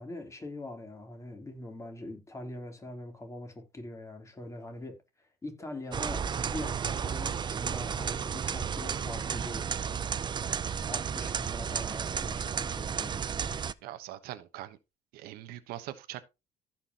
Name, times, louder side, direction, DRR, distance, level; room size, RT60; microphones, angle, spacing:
voice 1, 0.0-5.0 5.4-9.7 10.9-13.6, left 1 dB, 20° left, 3.4 m, -43 dB
sound 1, 5.9-13.7, right 7 dB, 30° right, 0.5 m, -33 dB
voice 2, 13.8-14.8 15.1-16.3, right 14 dB, 90° right, 1.1 m, -42 dB
15.5 x 6.0 x 2.9 m
cardioid pair, 115°, 15 cm